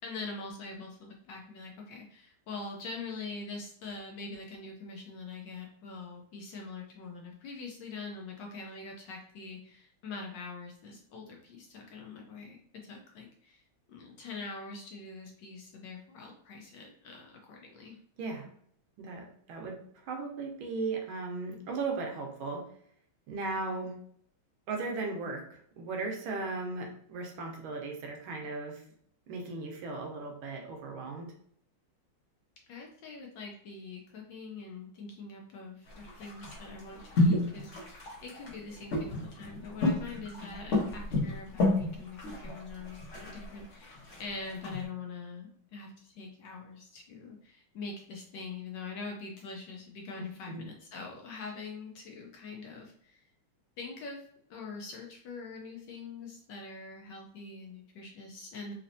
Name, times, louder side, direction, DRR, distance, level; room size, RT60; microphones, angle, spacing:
voice 1, 0.0-13.6 13.9-18.0 32.7-53.3 53.8-54.2 54.5-58.7, left 4 dB, 70° left, 1 dB, 1.1 m, -44 dB
voice 2, 19.0-19.8 20.1-22.6 23.3-23.9 24.7-28.8 29.3-31.3 50.2-50.6, right 3 dB, 75° right, 1 dB, 1.6 m, -37 dB
sound 1, 35.9-44.8, left 2 dB, 45° left, 1.1 m, -31 dB
4.2 x 2.8 x 2.6 m, 0.63 s
omnidirectional pair, 2.3 m